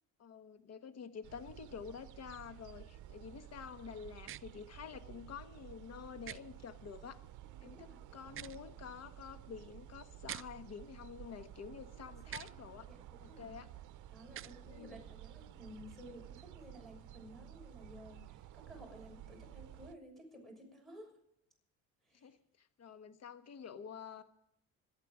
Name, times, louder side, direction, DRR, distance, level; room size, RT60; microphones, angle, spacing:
voice 1, 0.2-7.2 7.6-12.9 13.2-13.7 14.6-15.0 22.1-24.2, left 7 dB, 50° left, 9 dB, 1.4 m, -49 dB
sound 1, 1.2-20.0, right 12 dB, 60° right, 0.8 m, -53 dB
sound 2, 4.2-4.4 6.2-6.4 8.2-8.6 10.2-10.5 12.3-12.5 14.3-14.5, right 12 dB, 40° right, 0.5 m, -45 dB
voice 2, 7.4-8.0 12.3-12.6 12.9-13.5 14.1-21.1 22.0-22.4, equal, ahead, 3 dB, 6.5 m, -55 dB
26.5 x 9.1 x 4.9 m, 0.75 s
cardioid pair, 110°, 34 cm